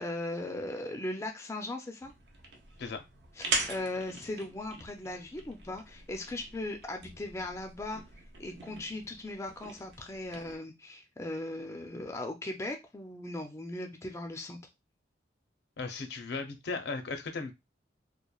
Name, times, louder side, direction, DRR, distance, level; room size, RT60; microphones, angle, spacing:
voice 1, 0.0-2.1 3.4-8.0 8.4-14.6, left 2 dB, 15° left, 0.3 m, -38 dB
sound 1, 2.0-10.6, right 3 dB, 70° right, 0.7 m, -41 dB
voice 2, 15.8-17.6, left 4 dB, 70° left, 0.5 m, -36 dB
3.0 x 2.1 x 2.2 m
head